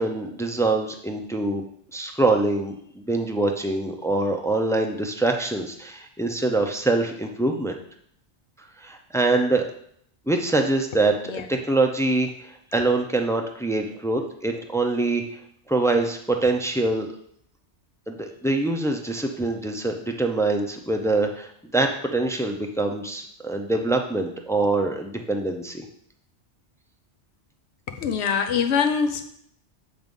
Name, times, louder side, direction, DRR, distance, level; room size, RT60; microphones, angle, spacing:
voice 1, 0.0-1.6 1.9-7.8 8.8-9.7 10.3-15.2 15.7-17.1 18.1-25.8, right 2 dB, 5° left, 3 dB, 0.4 m, -24 dB
voice 2, 28.0-29.2, left 6 dB, 70° left, 7 dB, 1.0 m, -23 dB
7.8 x 3.6 x 5.3 m, 0.67 s
omnidirectional pair, 1.2 m